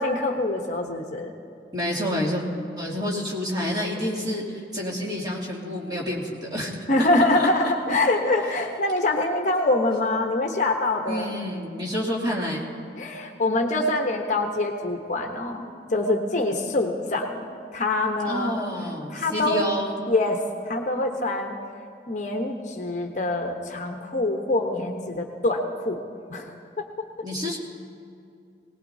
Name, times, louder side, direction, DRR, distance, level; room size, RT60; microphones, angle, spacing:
voice 1, 0.0-1.3 6.9-11.3 13.0-15.6 15.9-18.7 19.1-19.6 20.1-20.4 20.6-21.5 22.1-26.0 26.3-26.5, left 2 dB, 45° left, 3 dB, 0.9 m, -25 dB
voice 2, 1.7-2.4 2.8-6.7 7.0-7.1 7.3-7.5 7.9-8.0 11.1-12.7 18.2-20.0 27.2-27.6, left 1 dB, 25° right, -5 dB, 2.5 m, -28 dB
21.0 x 18.5 x 2.7 m, 2.5 s
head